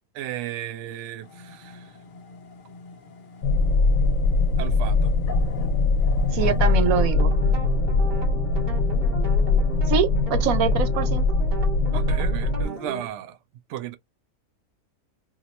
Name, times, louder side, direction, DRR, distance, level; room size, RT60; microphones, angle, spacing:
voice 1, 0.1-2.0 4.6-5.1 11.9-13.4 13.7-14.0, right 11 dB, 70° right, 0.8 m, -34 dB
sound 1, 1.2-7.0, left 4 dB, 55° left, 0.6 m, -39 dB
sound 2, 3.4-12.7, left 3 dB, 80° left, 1.0 m, -21 dB
voice 2, 6.3-7.3 9.9-11.2, right 8 dB, 90° right, 1.1 m, -24 dB
sound 3, 6.6-13.1, right 4 dB, 40° right, 1.0 m, -36 dB
2.8 x 2.1 x 4.0 m
omnidirectional pair, 1.4 m